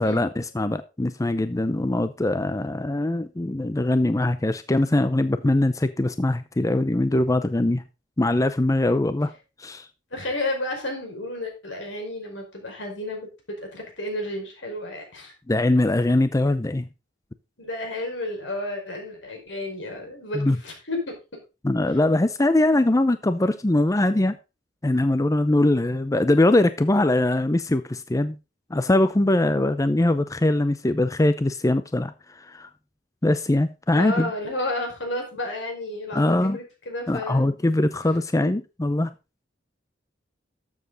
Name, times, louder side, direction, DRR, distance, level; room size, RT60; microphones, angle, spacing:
voice 1, 0.0-7.8 8.2-9.3 9.6-9.9 15.5-16.9 20.3-20.6 21.6-24.4 24.8-28.4 28.7-32.7 33.2-34.3 36.1-36.6 37.1-39.1, left 1 dB, 20° left, 0.5 m, -22 dB
voice 2, 10.1-13.3 13.6-15.3 17.6-21.1 33.9-37.5 38.4-38.5, left 1 dB, 80° left, 5.1 m, -31 dB
12.5 x 7.4 x 4.0 m
head